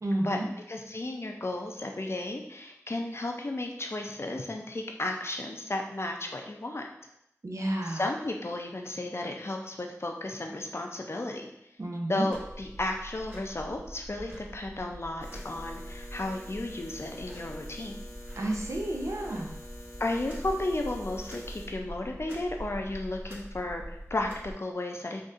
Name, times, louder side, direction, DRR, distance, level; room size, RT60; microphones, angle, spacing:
voice 1, 0.0-0.5 7.4-8.0 11.8-12.3 18.4-19.6, right 1 dB, 70° right, 1 dB, 0.5 m, -31 dB
voice 2, 0.7-6.9 7.8-11.5 12.1-18.0 20.0-25.3, left 2 dB, 50° left, 2 dB, 0.5 m, -34 dB
sound 1, 12.3-24.5, equal, 40° right, 1.4 m, -44 dB
sound 2, 15.2-21.7, left 1 dB, 85° left, 0.8 m, -46 dB
3.9 x 2.6 x 2.5 m, 0.79 s
wide cardioid pair, 40°, 5 cm